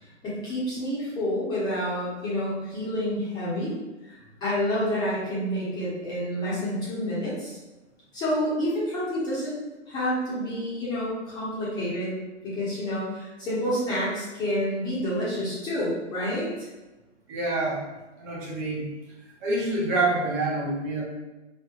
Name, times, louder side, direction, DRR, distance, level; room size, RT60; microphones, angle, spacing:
voice 1, 0.2-3.7 4.1-7.6 8.1-9.6 9.9-12.2 12.4-16.7, equal, 10° left, -8 dB, 0.9 m, -29 dB
voice 2, 17.3-17.9 18.2-18.9 19.4-21.0, right 2 dB, 15° right, -4 dB, 0.5 m, -27 dB
5.4 x 3.2 x 2.4 m, 1.1 s
hypercardioid pair, 140°, 37 cm